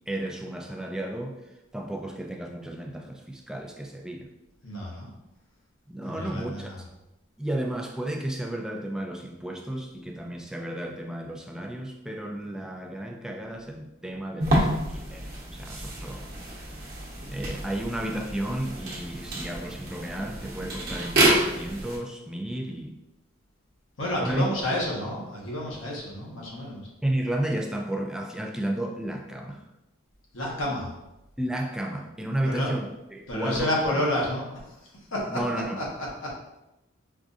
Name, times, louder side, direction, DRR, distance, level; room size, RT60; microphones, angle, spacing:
voice 1, 0.1-1.4 1.7-4.3 5.9-6.7 7.4-16.6 17.3-23.0 24.2-24.5 24.7-24.8 27.0-29.6 31.4-34.0 35.3-35.8, right 1 dB, 5° right, 2 dB, 0.3 m, -32 dB
voice 2, 4.6-5.1 6.0-6.8 24.0-26.9 30.3-30.9 32.2-32.7 33.3-35.4 35.8-36.3, left 1 dB, 85° left, -3 dB, 1.1 m, -30 dB
sound 1, 14.4-22.0, right 1 dB, 50° right, 0.9 m, -28 dB
4.7 x 2.5 x 2.5 m, 0.93 s
head